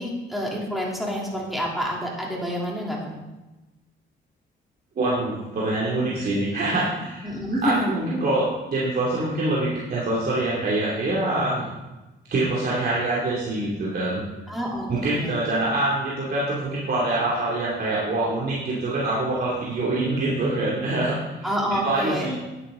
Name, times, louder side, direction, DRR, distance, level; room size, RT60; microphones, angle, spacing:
voice 1, 0.0-3.2 7.2-8.0 14.5-15.3 21.4-22.4, equal, ahead, -3 dB, 3.1 m, -28 dB
voice 2, 4.9-7.3 7.6-11.7 12.3-14.2 14.9-21.5 21.8-22.4, right 2 dB, 50° right, -6 dB, 2.7 m, -25 dB
10.0 x 9.6 x 3.8 m, 1.1 s
cardioid pair, 90°, 20 cm